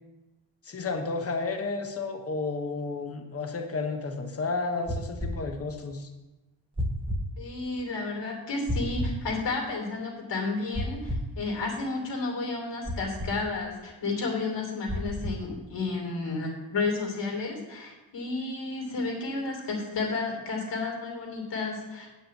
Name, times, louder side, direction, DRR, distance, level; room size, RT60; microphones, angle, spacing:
voice 1, 0.6-6.1, left 3 dB, 30° left, 5 dB, 1.0 m, -32 dB
sound 1, 4.9-5.3 6.8-7.2 8.7-9.2 10.7-11.3 12.8-13.3 14.9-15.4, equal, 10° right, 1.0 m, -30 dB
voice 2, 7.4-22.1, left 3 dB, 70° left, -1 dB, 2.9 m, -32 dB
8.8 x 5.5 x 7.6 m, 1.1 s
wide cardioid pair, 170°, 45 cm